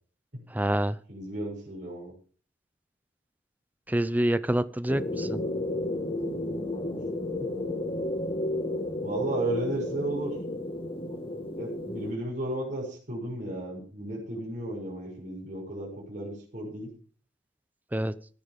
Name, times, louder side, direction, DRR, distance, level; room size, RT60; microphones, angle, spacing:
voice 1, 0.5-1.0 3.9-5.4 17.9-18.1, right 1 dB, 10° right, 16 dB, 0.6 m, -27 dB
voice 2, 1.1-2.1 7.6-7.7 9.0-10.4 11.6-16.9, right 1 dB, 40° right, -3 dB, 6.7 m, -34 dB
sound 1, 4.9-12.1, left 1 dB, 30° left, 1.6 m, -32 dB
15.5 x 10.0 x 5.2 m, 0.43 s
head